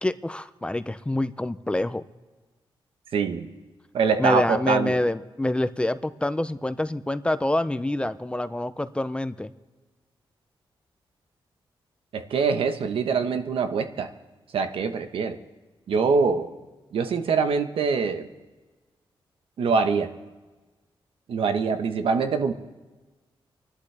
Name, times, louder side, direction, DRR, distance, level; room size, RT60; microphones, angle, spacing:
voice 1, 0.0-2.0 4.2-9.5, left 1 dB, 10° left, 13 dB, 0.5 m, -26 dB
voice 2, 3.1-3.5 3.9-5.0 12.1-14.1 14.5-15.4 15.9-16.5 16.9-18.3 19.6-20.1 21.3-22.5, right 5 dB, 80° right, 7 dB, 1.2 m, -24 dB
29.5 x 12.0 x 3.4 m, 1.3 s
cardioid pair, 110°, 9 cm